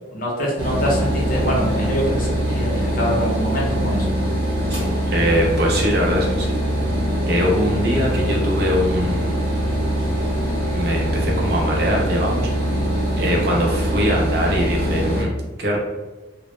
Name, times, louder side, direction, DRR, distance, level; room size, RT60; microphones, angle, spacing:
voice 1, 0.1-4.1 13.1-13.4, equal, 45° left, -3 dB, 0.6 m, -24 dB
sound 1, 0.6-15.2, equal, 80° right, 0.9 m, -22 dB
voice 2, 5.1-6.6 7.3-9.4 10.7-12.6 13.2-15.3 15.6-15.8, equal, 50° right, -2 dB, 0.5 m, -22 dB
2.0 x 2.0 x 3.0 m, 1.2 s
head